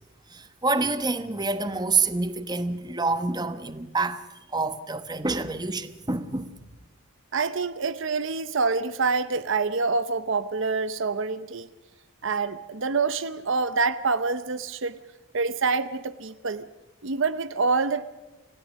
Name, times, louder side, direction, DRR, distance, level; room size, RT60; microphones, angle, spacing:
voice 1, 0.3-6.5, right 3 dB, 20° right, 1.0 m, -27 dB
voice 2, 7.3-11.7 12.2-15.0 15.3-16.7 17.0-18.0, right 4 dB, 55° right, 0.7 m, -26 dB
27.5 x 16.5 x 6.4 m
head